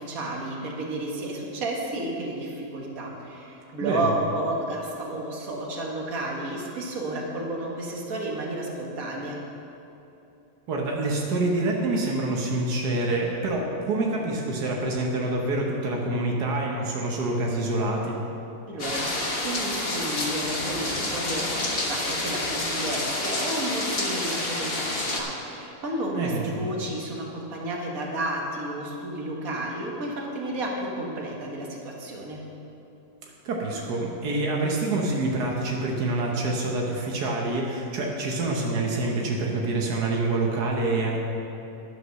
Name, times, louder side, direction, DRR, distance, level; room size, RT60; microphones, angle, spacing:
voice 1, 0.0-9.4 18.7-21.4 21.8-32.4, right 1 dB, 60° right, -1 dB, 1.9 m, -32 dB
voice 2, 10.7-18.2 26.1-26.7 33.4-41.2, right 2 dB, 85° right, -1 dB, 1.6 m, -26 dB
sound 1, 18.8-25.2, left 2 dB, 40° left, 1.4 m, -29 dB
11.0 x 7.6 x 6.4 m, 2.9 s
omnidirectional pair, 1.7 m